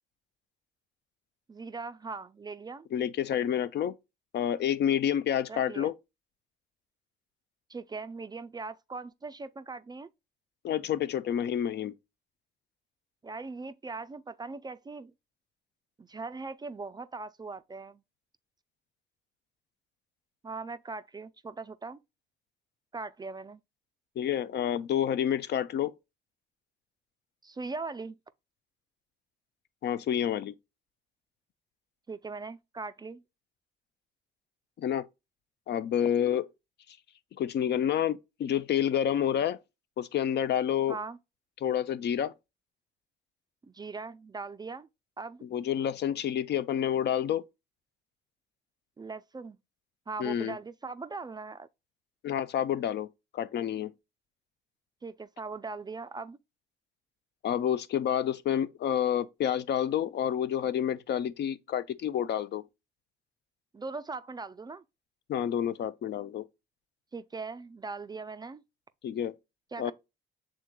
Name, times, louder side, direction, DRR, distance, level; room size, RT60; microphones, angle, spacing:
voice 1, 1.5-2.9 5.5-5.9 7.7-10.1 13.2-15.1 16.0-18.0 20.4-22.0 22.9-23.6 27.4-28.2 32.1-33.2 40.9-41.2 43.7-44.9 45.2-45.4 49.0-49.6 50.1-51.7 55.0-56.4 63.7-64.8 67.1-68.6 69.7-69.9, right 4 dB, 20° right, 0.3 m, -40 dB
voice 2, 2.9-3.9 4.3-5.9 10.6-11.9 24.2-25.9 29.8-30.5 34.8-35.0 35.7-36.4 37.4-39.6 40.0-41.0 41.6-42.3 45.4-47.4 50.2-50.6 52.2-53.1 53.3-53.9 57.4-62.6 65.3-66.4 69.0-69.3 69.8-69.9, left 9 dB, 60° left, 0.4 m, -29 dB
6.2 x 3.6 x 2.2 m
cardioid pair, 90°, 20 cm